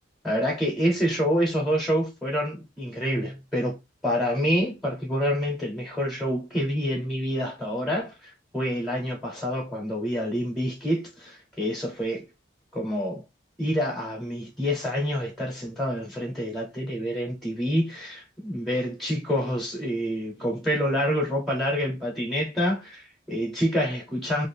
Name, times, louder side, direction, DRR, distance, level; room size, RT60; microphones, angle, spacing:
voice 1, 0.2-3.8 4.0-12.3 12.7-13.2 13.6-24.5, equal, ahead, 0.8 m, -27 dB
2.5 x 2.3 x 3.4 m
head